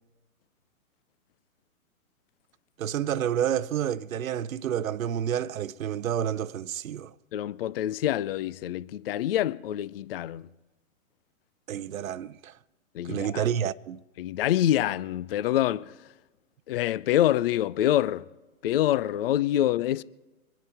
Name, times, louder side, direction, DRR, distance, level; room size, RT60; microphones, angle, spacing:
voice 1, 2.8-7.1 11.7-12.6 13.0-14.0, right 9 dB, 70° right, 0.7 m, -29 dB
voice 2, 7.3-10.5 12.9-13.5 14.2-16.0 16.7-18.3 18.6-20.0, left 12 dB, 45° left, 0.4 m, -26 dB
24.5 x 10.5 x 4.3 m
hypercardioid pair, 125°, 43 cm